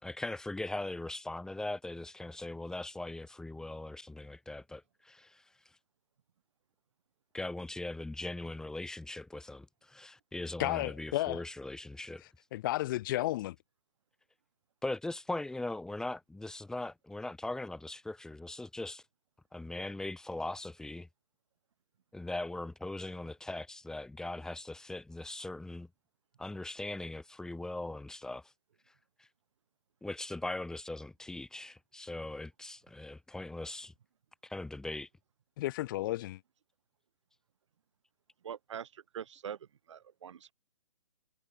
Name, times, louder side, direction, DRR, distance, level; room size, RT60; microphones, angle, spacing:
voice 1, 0.0-5.4 7.3-12.2 14.8-19.0 19.5-21.1 22.1-25.9 26.4-28.5 29.2-29.3 30.0-33.9 34.4-35.1, left 2 dB, 5° left, 4.5 m, -40 dB
voice 2, 10.6-11.4 12.5-13.5 35.6-36.4, left 16 dB, 35° left, 1.6 m, -32 dB
voice 3, 38.4-40.5, right 8 dB, 55° right, 3.7 m, -44 dB
hypercardioid pair, 140°, 18 cm